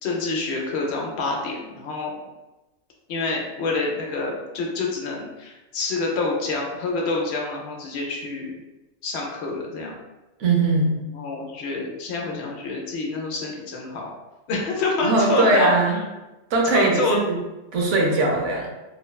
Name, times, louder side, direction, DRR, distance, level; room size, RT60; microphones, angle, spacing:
voice 1, 0.0-2.1 3.1-8.5 9.0-10.0 11.1-14.1 14.5-15.7 16.7-17.2, left 3 dB, 70° left, -1 dB, 0.8 m, -27 dB
voice 2, 10.4-11.0 15.0-16.0 16.5-17.4 17.7-18.7, right 2 dB, 85° right, 0 dB, 1.0 m, -20 dB
2.9 x 2.1 x 2.2 m, 1.0 s
omnidirectional pair, 1.2 m